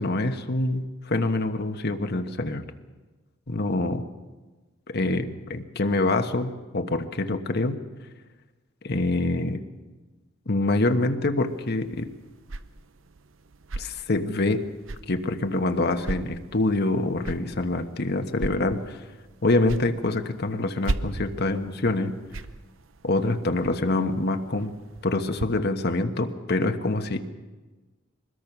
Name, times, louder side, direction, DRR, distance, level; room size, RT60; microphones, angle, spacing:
voice 1, 0.0-2.6 3.5-4.0 4.9-7.8 8.8-9.6 10.5-12.1 13.8-14.7 15.1-19.0 19.4-22.1 23.0-24.7 25.0-27.2, left 2 dB, 55° left, 7 dB, 1.2 m, -25 dB
sound 1, 11.4-25.5, right 2 dB, 75° right, 0.8 m, -39 dB
23.5 x 20.5 x 6.1 m, 1.2 s
head